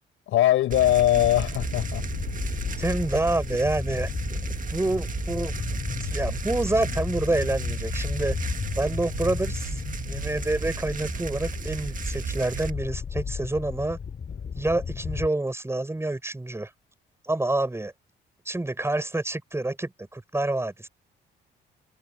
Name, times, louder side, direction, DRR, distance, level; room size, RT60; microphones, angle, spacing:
voice 1, 0.3-2.0 3.0-3.1 14.4-14.5, left 13 dB, 85° left, 7.8 m, -21 dB
sound 1, 0.7-12.7, right 6 dB, 40° right, 1.6 m, -34 dB
sound 2, 0.8-15.3, left 6 dB, 45° left, 3.0 m, -34 dB
voice 2, 2.8-5.6 6.0-14.0 14.6-16.7 17.2-17.9 18.4-20.9, right 2 dB, 15° right, 7.7 m, -28 dB
cardioid pair, 90°, 20 cm